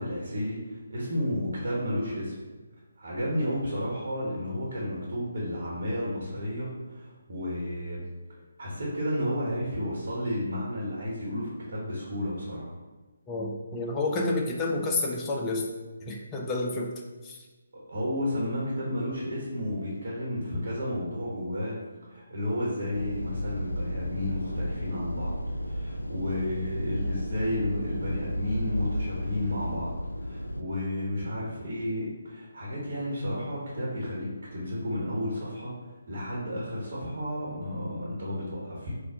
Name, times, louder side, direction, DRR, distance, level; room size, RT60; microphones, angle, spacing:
voice 1, 0.0-2.3 3.0-8.1 8.6-12.7 17.9-21.8 22.1-25.3 25.6-35.7 36.1-38.9, left 1 dB, 50° right, -5 dB, 1.3 m, -32 dB
voice 2, 13.3-15.7 16.0-16.9 17.2-17.4, left 2 dB, 15° left, -1 dB, 0.4 m, -29 dB
sound 1, 22.9-30.6, equal, 85° left, 0.3 m, -33 dB
4.2 x 2.5 x 3.9 m, 1.2 s
figure-of-eight pair, 145°, 0 cm